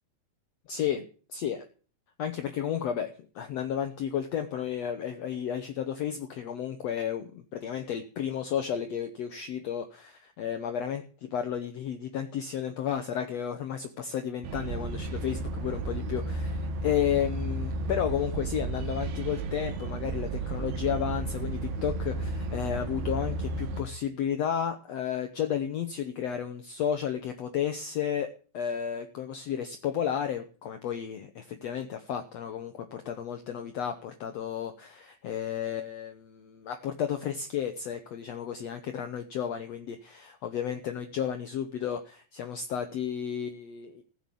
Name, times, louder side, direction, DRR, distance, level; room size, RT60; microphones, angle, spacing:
voice 1, 0.7-1.0 1.3-1.6 2.2-44.0, left 9 dB, 80° left, 7 dB, 1.5 m, -32 dB
sound 1, 14.4-23.8, right 2 dB, 80° right, 3.5 m, -33 dB
16.0 x 8.0 x 8.4 m, 0.40 s
omnidirectional pair, 4.5 m